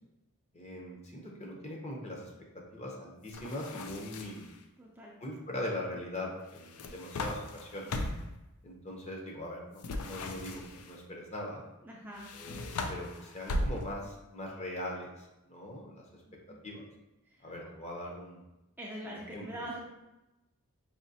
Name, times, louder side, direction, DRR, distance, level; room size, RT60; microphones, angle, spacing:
voice 1, 0.5-2.3 2.7-4.5 5.2-7.9 8.6-11.6 12.3-16.2 16.6-16.8 17.4-18.4 19.1-19.6, left 1 dB, 30° left, -1 dB, 0.7 m, -41 dB
sound 1, 3.3-4.5 6.5-8.4 9.8-11.0 12.1-14.1, left 2 dB, 85° left, 0.4 m, -38 dB
voice 2, 4.8-5.1 11.8-12.3 16.3-16.6 17.2-17.5 18.8-19.8, right 1 dB, 10° right, -4 dB, 0.4 m, -44 dB
5.0 x 2.8 x 2.8 m, 0.99 s
head